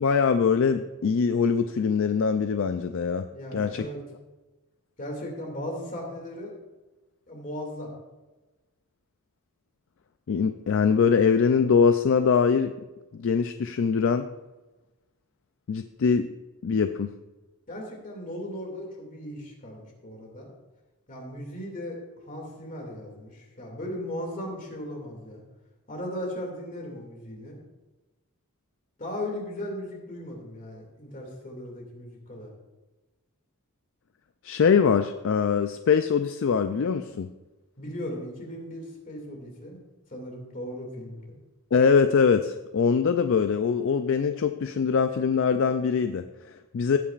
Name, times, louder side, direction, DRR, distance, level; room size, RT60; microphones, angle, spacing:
voice 1, 0.0-3.2 3.5-3.9 10.3-12.7 13.1-14.3 15.7-16.3 16.6-17.1 34.4-37.3 41.7-47.0, left 6 dB, 60° left, 9 dB, 0.4 m, -23 dB
voice 2, 3.3-4.0 5.0-6.5 7.3-7.9 17.7-20.5 21.1-22.0 22.3-25.4 25.9-27.6 29.0-32.5 37.8-39.8 40.1-41.4, left 1 dB, 35° left, 0 dB, 2.4 m, -37 dB
16.5 x 8.5 x 2.5 m, 1.1 s
head